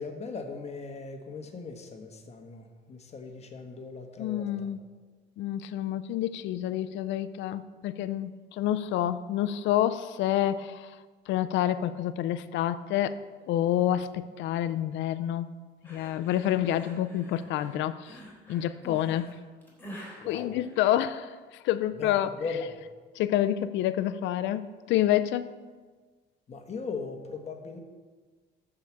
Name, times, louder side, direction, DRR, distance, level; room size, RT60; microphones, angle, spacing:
voice 1, 0.0-4.7 18.8-19.1 20.2-20.6 21.9-22.8 26.5-27.8, left 4 dB, 35° left, 4 dB, 1.4 m, -39 dB
voice 2, 4.2-4.8 5.4-10.9 11.3-13.2 13.5-15.5 15.9-18.1 18.5-19.2 20.3-21.3 21.6-22.3 23.2-25.5, left 12 dB, 80° left, 13 dB, 0.6 m, -28 dB
sound 1, 15.8-21.4, equal, 10° left, 3.4 m, -48 dB
13.0 x 4.9 x 7.1 m, 1.4 s
cardioid pair, 125°, 19 cm